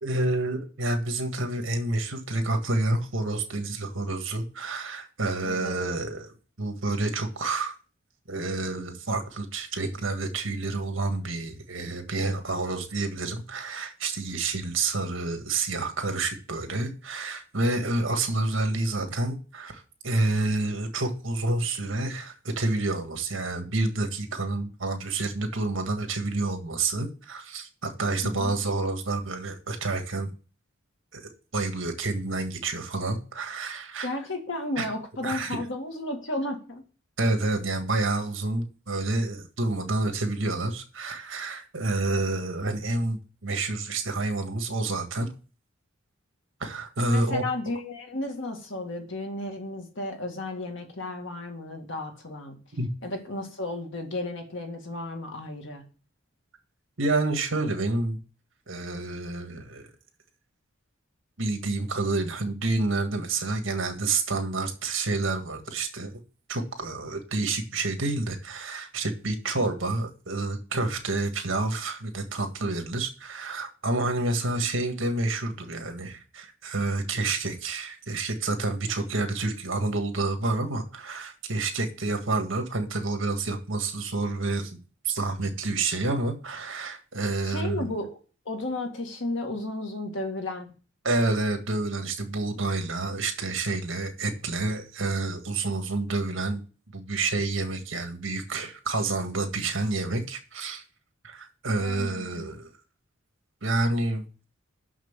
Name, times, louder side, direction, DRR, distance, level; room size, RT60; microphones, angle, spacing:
voice 1, 0.0-6.3 6.6-7.8 8.3-30.3 31.1-34.1 34.8-34.9 35.2-35.6 37.2-45.3 46.6-47.4 52.8-52.9 57.0-58.2 58.7-59.9 61.4-66.2 66.5-84.8 85.0-87.9 91.0-96.6 96.9-100.8 101.2-102.7 103.6-104.2, right 2 dB, 70° right, 1.8 m, -29 dB
voice 2, 5.4-5.7 28.2-28.5 34.0-36.8 47.0-52.6 53.0-55.9 87.4-88.1 88.5-90.7 101.8-102.6, left 2 dB, 65° left, 2.1 m, -33 dB
6.4 x 6.0 x 7.2 m
head